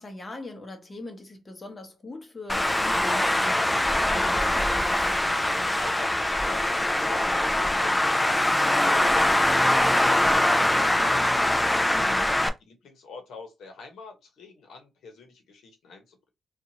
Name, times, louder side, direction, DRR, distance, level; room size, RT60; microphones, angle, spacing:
voice 1, 0.0-4.9 11.9-12.4, left 2 dB, 30° left, 0.9 m, -41 dB
Traffic noise roadway noise, 2.5-12.5, left 1 dB, 10° left, 0.4 m, -23 dB
voice 2, 5.5-11.8 12.3-16.3, left 4 dB, 85° left, 1.0 m, -45 dB
2.7 x 2.4 x 2.8 m
cardioid pair, 85°, 0 cm